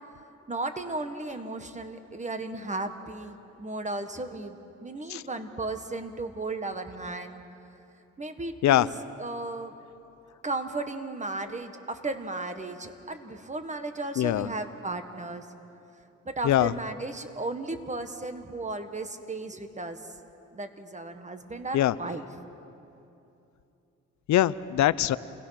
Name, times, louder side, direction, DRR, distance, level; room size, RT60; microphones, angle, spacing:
voice 1, 0.5-7.4 8.2-8.9 9.2-9.8 10.4-15.5 16.2-20.0 20.5-22.2, right 2 dB, 25° right, 8 dB, 1.5 m, -35 dB
voice 2, 14.2-14.5 16.4-16.7 21.7-21.9 24.3-25.2, left 13 dB, 65° left, 17 dB, 0.7 m, -22 dB
28.5 x 20.0 x 5.8 m, 2.8 s
cardioid pair, 90°, 30 cm